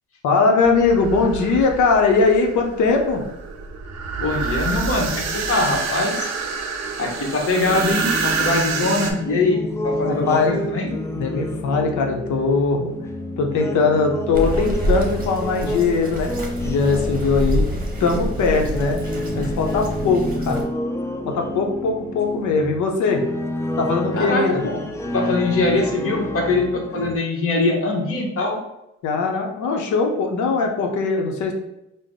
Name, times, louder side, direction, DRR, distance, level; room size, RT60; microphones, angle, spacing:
voice 1, 0.2-3.2 10.0-10.6 11.1-12.9 13.4-16.3 16.6-17.6 18.0-19.0 19.3-20.6 21.3-23.2 23.8-24.6 29.0-31.5, left 4 dB, 75° left, 3 dB, 0.7 m, -20 dB
sound 1, 0.6-9.1, right 4 dB, 60° right, 0.6 m, -27 dB
voice 2, 4.2-6.3 7.0-10.9 24.1-24.9 25.1-28.6, left 2 dB, 45° left, 1 dB, 1.0 m, -22 dB
sound 2, 7.6-27.2, left 1 dB, 10° left, 0.3 m, -29 dB
Bird vocalization bird call bird song, 14.3-20.6, equal, 30° right, 0.9 m, -27 dB
3.7 x 2.1 x 3.5 m, 0.85 s
cardioid pair, 90°, 30 cm